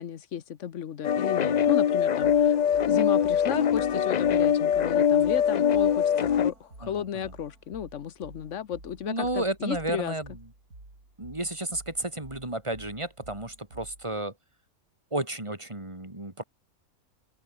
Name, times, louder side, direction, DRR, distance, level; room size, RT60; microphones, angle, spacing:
voice 1, 0.0-10.1, left 9 dB, 60° left, 1.2 m, -34 dB
sound 1, 1.0-6.5, left 8 dB, 80° left, 0.3 m, -23 dB
sound 2, 2.2-14.2, right 2 dB, 85° right, 7.7 m, -51 dB
voice 2, 6.8-7.3 9.0-10.4 11.2-14.3 15.1-16.4, right 1 dB, 20° right, 3.2 m, -32 dB
omnidirectional pair, 1.5 m